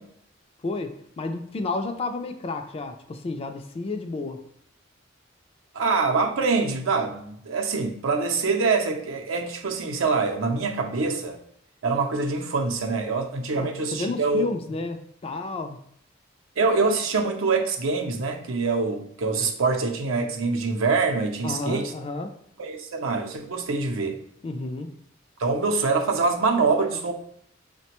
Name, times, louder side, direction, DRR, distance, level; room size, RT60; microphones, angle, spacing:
voice 1, 0.6-4.4 13.5-15.8 21.4-22.4 24.4-24.9, left 2 dB, 30° left, 6 dB, 0.3 m, -31 dB
voice 2, 5.7-11.4 11.8-14.4 16.6-21.9 22.6-24.2 25.4-27.1, right 4 dB, 80° right, 4 dB, 0.5 m, -25 dB
5.7 x 2.2 x 2.9 m, 0.71 s
head